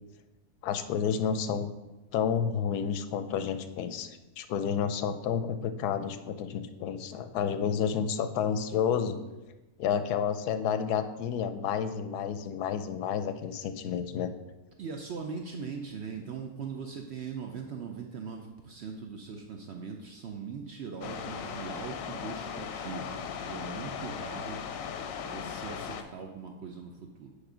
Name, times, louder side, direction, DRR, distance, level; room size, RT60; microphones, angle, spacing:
voice 1, 0.6-1.7 2.1-4.1 4.4-9.2 9.8-14.3, left 7 dB, 90° left, 10 dB, 1.1 m, -30 dB
voice 2, 14.8-24.9 25.2-27.3, right 5 dB, 65° right, 3 dB, 0.6 m, -40 dB
sound 1, 21.0-26.0, left 7 dB, 70° left, 0.9 m, -38 dB
8.3 x 3.2 x 4.9 m, 1.1 s
omnidirectional pair, 1.6 m